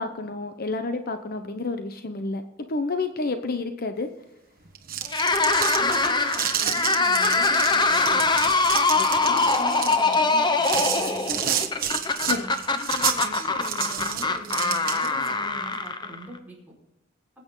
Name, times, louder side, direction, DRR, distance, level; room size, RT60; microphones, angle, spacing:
voice 1, 0.0-2.4 2.7-4.1 9.0-9.1 12.2-12.4, left 3 dB, 50° left, 8 dB, 0.9 m, -29 dB
sound 1, 4.7-15.3, right 10 dB, 50° right, 1.4 m, -30 dB
sound 2, 5.1-16.4, left 3 dB, 25° left, 0.9 m, -23 dB
voice 2, 5.7-8.5 9.1-11.5 12.2-16.7, equal, 10° right, -4 dB, 4.9 m, -41 dB
20.5 x 8.7 x 3.9 m, 0.90 s
head